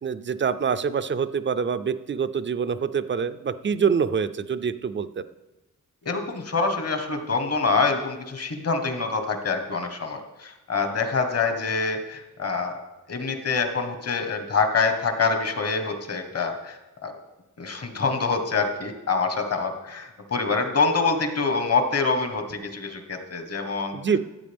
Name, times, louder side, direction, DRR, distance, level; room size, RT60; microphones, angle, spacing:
voice 1, 0.0-5.2 23.9-24.2, right 6 dB, 35° right, 12 dB, 0.5 m, -25 dB
voice 2, 6.0-12.8 13.1-17.1 17.6-23.9, left 4 dB, 50° left, 6 dB, 1.3 m, -25 dB
14.5 x 8.4 x 3.5 m, 1.0 s
wide cardioid pair, 115°, 32 cm